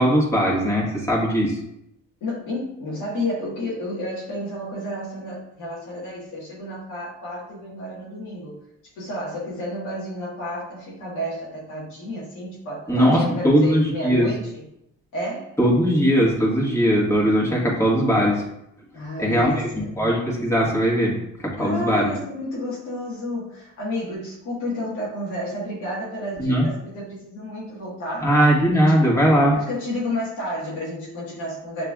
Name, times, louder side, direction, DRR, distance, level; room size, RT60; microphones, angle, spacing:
voice 1, 0.0-1.6 12.9-14.3 15.6-18.4 19.2-19.7 20.0-21.2 21.4-22.1 26.4-26.6 28.2-29.6, equal, 10° left, -4 dB, 1.7 m, -19 dB
voice 2, 2.2-8.6 9.0-14.6 15.1-15.5 18.9-19.9 21.6-28.3 28.7-28.9 29.5-31.9, left 1 dB, 90° left, -6 dB, 1.6 m, -31 dB
6.7 x 3.2 x 2.4 m, 0.80 s
cardioid pair, 90°, 30 cm